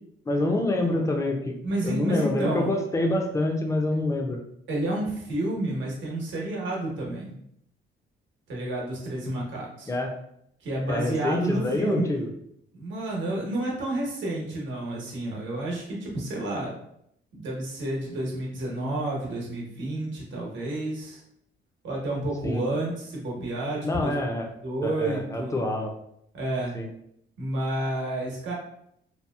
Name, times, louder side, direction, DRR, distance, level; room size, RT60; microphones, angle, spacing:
voice 1, 0.3-1.5 1.8-4.4 9.9-10.1 10.9-12.3 22.4-22.6 23.8-24.5 24.8-25.9 26.7-26.9, left 2 dB, 15° left, 2 dB, 0.5 m, -26 dB
voice 2, 1.6-2.7 4.7-7.4 8.5-9.9 10.6-12.1 12.7-16.7 17.3-21.2 21.8-24.3 24.6-25.5 26.3-26.7 27.4-28.5, right 1 dB, 70° right, -3 dB, 1.0 m, -30 dB
2.8 x 2.5 x 2.3 m, 0.73 s
cardioid pair, 90°, 20 cm